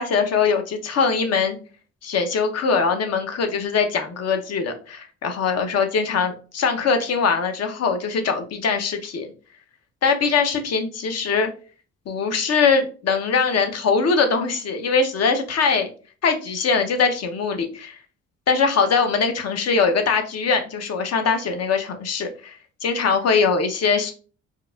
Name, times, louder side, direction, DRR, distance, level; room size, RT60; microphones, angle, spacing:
voice 1, 0.0-1.6 2.0-9.3 10.0-11.5 12.1-15.9 16.2-18.0 18.5-24.1, left 5 dB, 55° left, 6 dB, 0.7 m, -22 dB
4.6 x 2.4 x 2.3 m, 0.38 s
cardioid pair, 90°, 30 cm